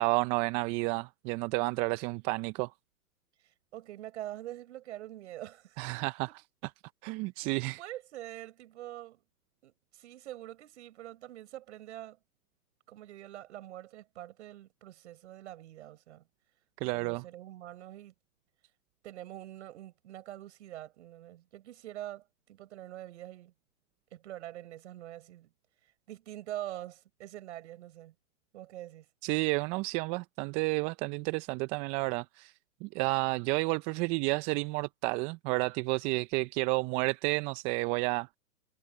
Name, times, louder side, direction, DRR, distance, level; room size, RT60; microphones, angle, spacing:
voice 1, 0.0-2.7 5.8-6.3 7.0-7.8 16.8-17.2 29.2-32.5 32.8-38.4, right 25 dB, 15° right, 0.6 m, -31 dB
voice 2, 3.7-5.8 6.3-6.4 7.8-9.2 9.6-12.2 12.9-16.3 16.9-18.1 19.0-23.5 24.1-25.5 26.1-28.1 28.5-29.1, right 13 dB, 45° right, 6.5 m, -45 dB
figure-of-eight pair, 125°, 46 cm